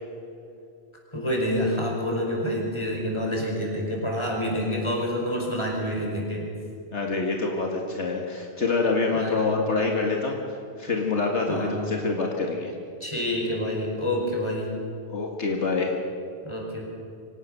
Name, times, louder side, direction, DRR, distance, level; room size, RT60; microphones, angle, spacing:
voice 1, 1.1-6.5 9.1-9.5 11.5-11.8 13.0-14.8 16.4-16.9, equal, 25° left, -1 dB, 5.3 m, -28 dB
voice 2, 6.9-12.7 15.1-15.9, left 3 dB, 75° left, 1 dB, 2.1 m, -26 dB
24.5 x 18.0 x 6.7 m, 2.6 s
omnidirectional pair, 1.2 m